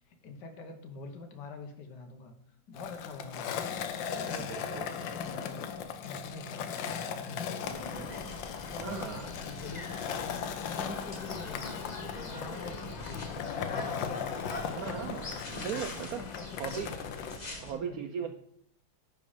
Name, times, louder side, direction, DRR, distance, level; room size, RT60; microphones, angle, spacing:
voice 1, 0.1-8.0 8.6-15.1 15.5-15.7 16.2-17.0 17.7-18.3, left 3 dB, 65° left, 5 dB, 1.6 m, -46 dB
Skateboard, 2.7-17.4, left 7 dB, 85° left, 1.4 m, -38 dB
voice 2, 4.2-4.9 8.8-9.3 12.5-12.8 14.8-16.2 16.6-16.9 17.6-18.3, right 8 dB, 70° right, 6 dB, 0.8 m, -38 dB
sound 1, 7.6-17.7, left 2 dB, 30° left, 1.0 m, -43 dB
10.0 x 4.2 x 5.0 m, 0.71 s
omnidirectional pair, 2.0 m